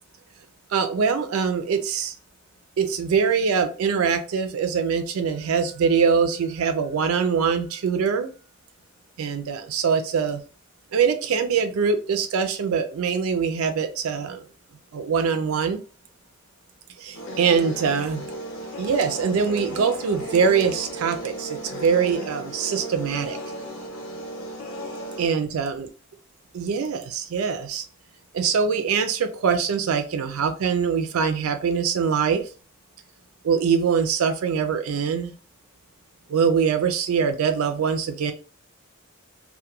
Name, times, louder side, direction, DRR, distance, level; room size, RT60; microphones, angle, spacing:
voice 1, 0.7-2.1 2.8-8.3 9.2-10.4 10.9-14.4 14.9-15.8 17.0-18.3 18.8-23.4 25.2-25.9 26.5-27.8 28.3-32.5 33.4-35.3 36.3-38.3, right 6 dB, 85° right, 9 dB, 0.4 m, -23 dB
sound 1, 17.1-25.3, right 1 dB, 70° left, 0.7 m, -35 dB
2.2 x 2.2 x 2.8 m, 0.35 s
head